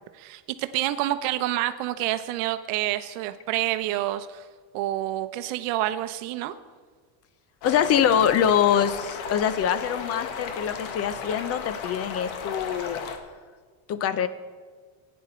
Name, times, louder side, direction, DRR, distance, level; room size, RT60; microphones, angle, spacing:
voice 1, 0.1-4.4 4.7-6.5, right 14 dB, 75° right, 10 dB, 0.8 m, -28 dB
sound 1, 7.6-13.2, left 6 dB, 65° left, 1.5 m, -35 dB
voice 2, 7.6-13.0 13.9-14.3, left 9 dB, 30° left, 14 dB, 0.4 m, -24 dB
17.0 x 9.5 x 4.3 m, 1.5 s
cardioid pair, 165°, 50 cm